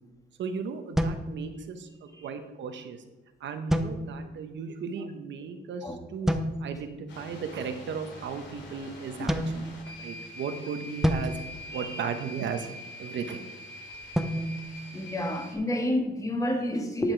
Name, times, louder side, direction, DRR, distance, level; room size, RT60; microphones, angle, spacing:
voice 1, 0.4-3.0 3.4-6.3 6.6-9.6 10.0-11.3 11.7-12.7 13.0-13.4, right 6 dB, 70° right, 7 dB, 1.0 m, -36 dB
sound 1, 1.0-2.0 3.7-4.5 6.3-6.9 9.3-10.3 11.0-12.5 14.1-15.7, equal, ahead, 0.7 m, -31 dB
sound 2, 7.1-15.5, left 1 dB, 65° left, 2.7 m, -44 dB
voice 2, 11.7-12.0 14.9-17.1, left 1 dB, 15° left, 4 dB, 1.6 m, -29 dB
10.5 x 5.9 x 4.5 m, 1.1 s
cardioid pair, 90°, 20 cm